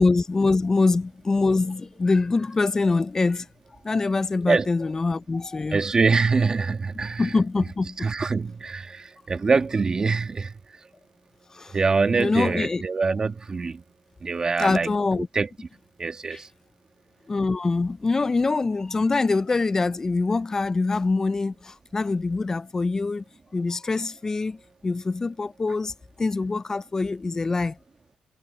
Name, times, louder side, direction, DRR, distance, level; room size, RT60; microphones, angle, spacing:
voice 1, 0.0-3.5 3.8-5.8 7.2-8.0 11.5-11.8 12.1-12.8 14.6-15.3 17.3-23.2 23.5-27.8, left 3 dB, 20° left, 0.3 m, -24 dB
voice 2, 5.7-7.3 8.0-10.9 11.7-13.8 14.2-15.5 16.0-16.5, right 4 dB, 30° right, 1.7 m, -24 dB
cardioid pair, 135°, 3 cm